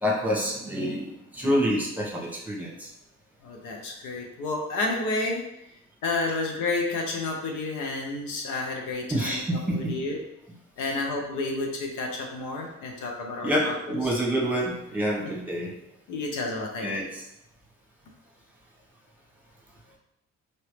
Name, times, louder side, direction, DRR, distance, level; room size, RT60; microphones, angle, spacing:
voice 1, 0.0-2.9 9.1-9.9 13.4-15.7 16.8-17.2, equal, 5° right, -3 dB, 1.3 m, -27 dB
voice 2, 3.4-5.4 6.0-10.2 10.8-14.1 15.2-15.3 16.1-17.1, left 3 dB, 90° left, 1 dB, 0.9 m, -31 dB
4.5 x 2.9 x 3.3 m, 0.83 s
cardioid pair, 90°, 30 cm